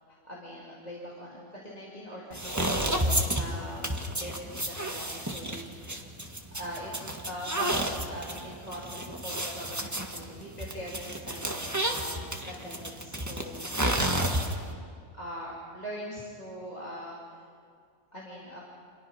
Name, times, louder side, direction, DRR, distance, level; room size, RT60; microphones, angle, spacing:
voice 1, 0.1-6.0 6.5-6.9 7.3-8.9 9.2-14.6 15.1-17.4 18.1-18.6, equal, 30° left, -5 dB, 3.2 m, -42 dB
sound 1, 2.3-14.7, right 1 dB, 10° right, 1.6 m, -31 dB
29.5 x 27.0 x 5.7 m, 2.2 s
omnidirectional pair, 1.5 m